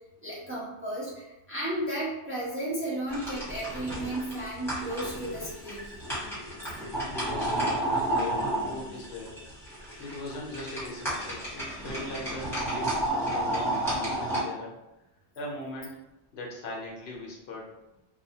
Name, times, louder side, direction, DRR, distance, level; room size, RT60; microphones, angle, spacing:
voice 1, 0.2-6.0, right 1 dB, 15° right, -7 dB, 0.5 m, -34 dB
sound 1, 3.1-14.4, right 1 dB, ahead, 1.1 m, -32 dB
voice 2, 7.0-9.4 10.0-14.8 15.3-16.0 16.3-17.8, left 2 dB, 75° left, -3 dB, 0.9 m, -40 dB
2.7 x 2.2 x 2.7 m, 0.93 s
omnidirectional pair, 1.1 m